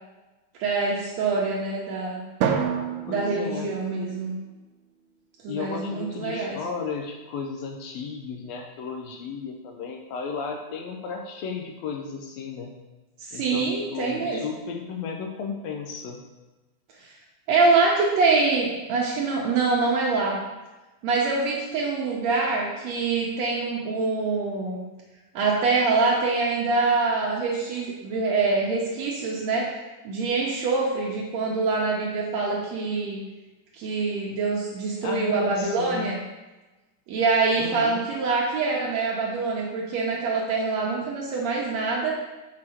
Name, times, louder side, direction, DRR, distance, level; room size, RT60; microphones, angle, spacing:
voice 1, 0.6-2.2 3.1-4.4 5.4-6.6 13.2-14.4 17.0-17.1 17.5-20.4 21.0-24.8 25.4-29.7 30.0-33.2 33.7-36.2 37.1-42.1, right 4 dB, 70° right, -3 dB, 1.9 m, -25 dB
Drum, 2.4-4.7, right 7 dB, 90° right, 2.1 m, -29 dB
voice 2, 3.1-3.7 5.5-12.7 13.3-16.2 35.0-36.1 37.6-38.0, left 5 dB, 75° left, 3 dB, 1.7 m, -34 dB
6.3 x 4.7 x 4.2 m, 1.1 s
omnidirectional pair, 3.4 m